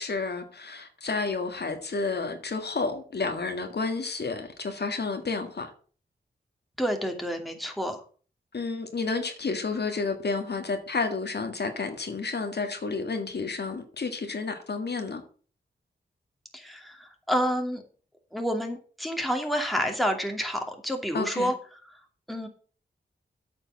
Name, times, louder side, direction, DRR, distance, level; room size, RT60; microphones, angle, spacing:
voice 1, 0.0-5.7 8.5-15.2 21.1-21.5, left 4 dB, 60° left, 1.8 m, -31 dB
voice 2, 6.8-8.0 16.5-17.8 18.3-21.5 22.3-22.5, equal, ahead, 2.4 m, -29 dB
8.8 x 5.3 x 7.0 m
cardioid pair, 55°, 19 cm